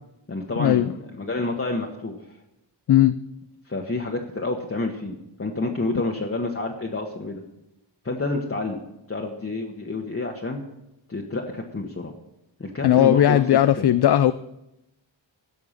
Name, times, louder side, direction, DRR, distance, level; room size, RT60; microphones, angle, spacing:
voice 1, 0.3-2.4 3.6-7.4 8.0-8.8 9.1-10.6 11.1-12.1 12.6-13.9, left 2 dB, 30° left, 0 dB, 1.4 m, -29 dB
voice 2, 12.8-14.3, left 11 dB, 60° left, 13 dB, 0.5 m, -17 dB
16.0 x 6.0 x 7.3 m, 0.88 s
wide cardioid pair, 85°, 46 cm